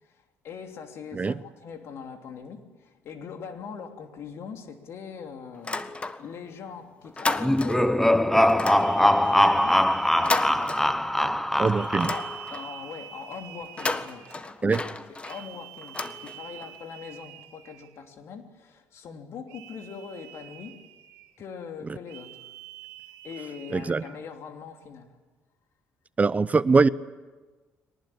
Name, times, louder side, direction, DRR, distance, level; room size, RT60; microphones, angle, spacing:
voice 1, 0.0-5.9 6.2-9.8 10.2-11.2 12.1-14.8 15.3-20.8 21.4-22.5 23.2-25.2, left 6 dB, 65° left, 5 dB, 3.0 m, -42 dB
sound 1, 5.5-6.5 6.8-8.0 8.5-11.3 11.7-12.8 13.6-16.7, left 3 dB, 25° left, 1.5 m, -33 dB
sound 2, 7.4-12.5, left 1 dB, 5° left, 0.9 m, -22 dB
sound 3, 7.8-8.1 8.7-11.2 11.7-14.5 15.2-18.0 19.5-21.4 22.1-24.2, right 14 dB, 85° right, 1.7 m, -46 dB
voice 2, 11.6-12.1 14.6-14.8 23.7-24.0 26.2-26.9, right 4 dB, 30° right, 16 dB, 0.8 m, -22 dB
23.5 x 19.0 x 8.8 m, 1.3 s
supercardioid pair, 65°, 5 cm